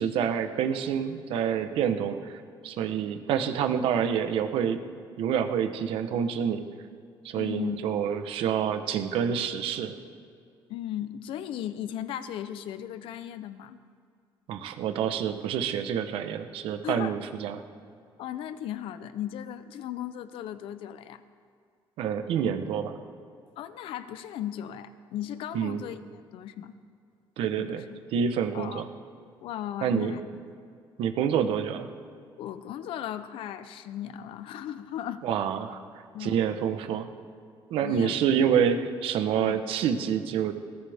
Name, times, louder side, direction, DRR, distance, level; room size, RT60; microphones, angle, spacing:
voice 1, 0.0-2.4 2.6-4.8 5.2-6.6 7.2-9.9 14.5-17.6 22.0-23.0 25.5-25.8 27.4-27.8 28.1-28.9 29.8-30.1 31.0-31.9 35.2-35.8 36.2-37.1 37.7-40.5, right 8 dB, 90° right, 7 dB, 1.1 m, -27 dB
voice 2, 7.3-7.8 10.7-13.8 16.8-17.2 18.2-21.2 23.6-26.0 26.3-26.7 27.5-27.9 28.5-28.8 29.4-30.2 32.4-35.2 36.1-36.4 37.8-38.2 39.4-39.6, left 11 dB, 75° left, 13 dB, 0.7 m, -36 dB
21.0 x 18.0 x 3.6 m, 2.3 s
cardioid pair, 180°, 9 cm